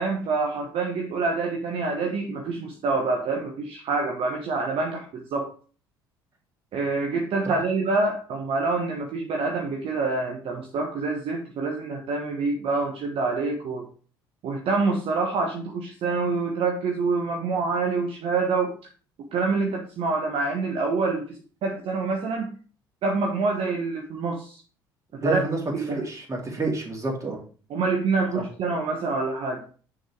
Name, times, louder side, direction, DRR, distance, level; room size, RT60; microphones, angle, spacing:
voice 1, 0.0-5.5 6.7-13.9 14.4-18.7 19.3-22.5 23.0-24.6 25.2-25.4 25.7-26.0 27.7-29.6, right 3 dB, 55° right, 1 dB, 1.2 m, -26 dB
voice 2, 25.1-25.6 25.9-27.4 28.3-28.4, right 3 dB, 25° right, -1 dB, 3.0 m, -28 dB
6.4 x 4.5 x 4.6 m, 0.39 s
hypercardioid pair, 60°, 11 cm